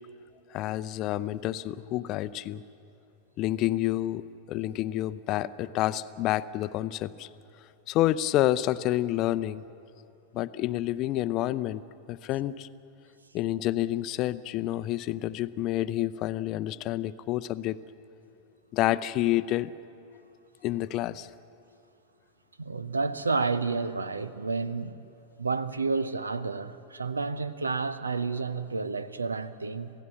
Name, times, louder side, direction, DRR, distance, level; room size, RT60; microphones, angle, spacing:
voice 1, 0.5-2.6 3.4-4.2 4.5-7.3 7.9-9.6 10.3-11.8 12.1-12.7 13.3-17.8 18.7-19.7 20.6-21.3, left 14 dB, 40° left, 0.6 m, -28 dB
voice 2, 22.6-25.0 25.4-29.9, right 4 dB, 75° right, 0.8 m, -30 dB
28.0 x 16.5 x 7.6 m
figure-of-eight pair, 90°, 0 cm